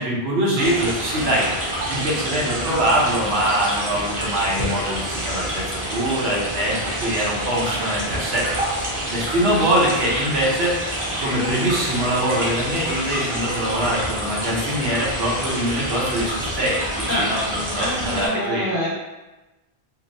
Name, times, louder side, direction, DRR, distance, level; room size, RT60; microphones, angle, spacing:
voice 1, 0.0-1.5 1.9-8.5 8.8-18.7, right 1 dB, 85° right, -4 dB, 1.0 m, -23 dB
sound 1, 0.6-18.3, right 1 dB, 35° right, 0.6 m, -27 dB
voice 2, 17.8-18.9, left 1 dB, 15° left, -11 dB, 1.0 m, -25 dB
2.8 x 2.1 x 2.5 m, 1.1 s
omnidirectional pair, 1.0 m